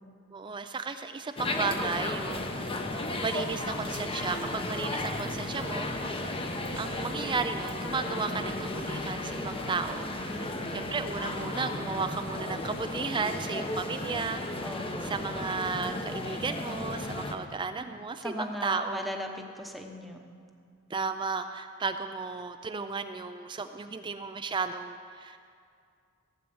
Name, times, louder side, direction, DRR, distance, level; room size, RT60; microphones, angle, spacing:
voice 1, 0.3-2.9 3.2-6.1 6.8-10.3 10.7-14.7 15.0-19.1 20.9-25.4, right 4 dB, 20° right, 8 dB, 0.4 m, -34 dB
sound 1, 1.4-17.3, left 2 dB, 25° left, 1.0 m, -34 dB
voice 2, 10.3-10.9 14.6-15.1 18.2-20.2, equal, ahead, 2 dB, 1.1 m, -38 dB
16.0 x 9.0 x 7.1 m, 2.3 s
head